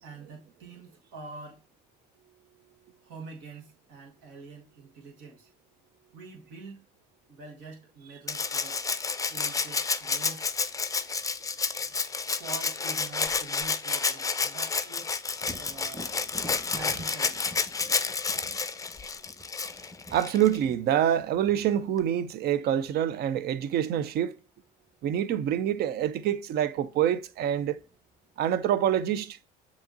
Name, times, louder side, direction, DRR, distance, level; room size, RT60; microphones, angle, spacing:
voice 1, 0.0-1.6 3.0-5.5 6.1-6.8 7.3-8.8 9.3-10.4 11.8-11.9 12.3-15.2 15.6-16.2 16.7-17.4, right 4 dB, 80° right, 1.4 m, -45 dB
Rattle (instrument), 8.3-20.6 22.0-22.1, left 4 dB, 20° left, 0.4 m, -30 dB
Thunder, 15.4-23.1 26.7-26.8 27.3-28.2, equal, 5° right, 1.2 m, -48 dB
voice 2, 20.1-24.3 25.0-27.8 28.4-29.4, right 10 dB, 60° right, 0.5 m, -26 dB
7.1 x 2.9 x 2.6 m
supercardioid pair, 70°, 18 cm